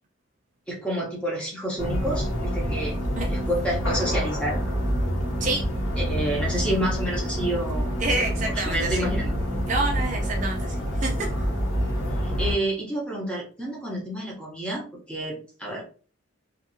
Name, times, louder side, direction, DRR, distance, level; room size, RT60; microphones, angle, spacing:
voice 1, 0.7-3.0 3.3-4.6 6.0-7.9 8.5-9.3 12.2-15.9, right 1 dB, 5° left, -4 dB, 0.8 m, -29 dB
sound 1, 1.8-12.5, equal, 85° left, 1.4 m, -27 dB
voice 2, 8.0-9.1 9.7-11.3, right 2 dB, 35° right, 0 dB, 0.4 m, -28 dB
2.8 x 2.5 x 2.6 m, 0.40 s
head